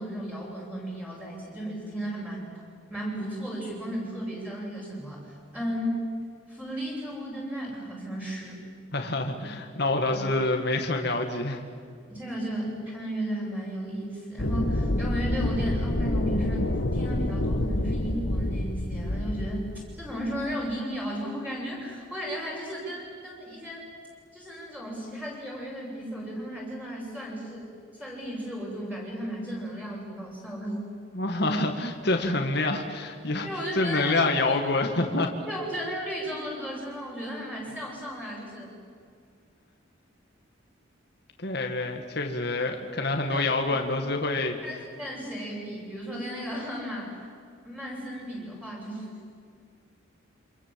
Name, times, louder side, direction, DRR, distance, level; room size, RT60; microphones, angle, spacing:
voice 1, 0.0-2.5 2.9-6.0 6.5-8.6 10.1-10.2 12.1-23.8 24.3-27.7 27.9-30.8 33.4-34.2 34.5-34.6 35.5-38.7 43.3-43.4 43.7-43.8 44.6-47.2 47.6-49.1, equal, 10° right, -5 dB, 6.9 m, -34 dB
voice 2, 8.9-11.6 31.2-33.5 33.8-35.3 41.4-44.6, left 2 dB, 55° left, 3 dB, 2.0 m, -27 dB
sound 1, 14.4-20.7, left 1 dB, 70° left, 1.5 m, -28 dB
28.5 x 26.0 x 7.7 m, 2.2 s
head